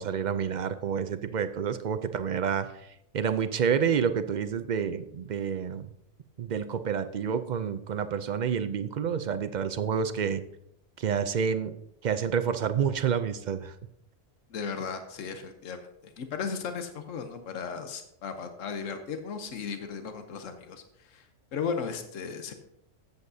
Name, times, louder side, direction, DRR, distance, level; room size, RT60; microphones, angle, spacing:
voice 1, 0.0-2.7 3.1-5.9 6.4-10.4 11.0-11.7 12.0-13.7, right 7 dB, 60° right, 10 dB, 0.4 m, -28 dB
voice 2, 14.5-21.3 21.5-22.5, left 5 dB, 85° left, 7 dB, 1.2 m, -36 dB
14.0 x 8.1 x 2.7 m, 0.78 s
omnidirectional pair, 1.3 m